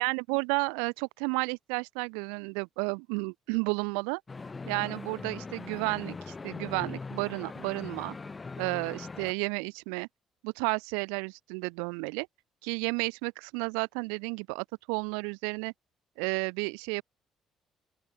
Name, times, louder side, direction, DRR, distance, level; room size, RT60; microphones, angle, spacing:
voice 1, 0.0-4.2 4.7-8.1 8.6-10.1 10.4-12.3 12.6-15.7 16.2-17.0, right 40 dB or more, 90° right, 1.1 m, -32 dB
sound 1, 4.3-9.3, left 4 dB, 30° left, 2.6 m, -41 dB
open air
supercardioid pair, 65°, 0 cm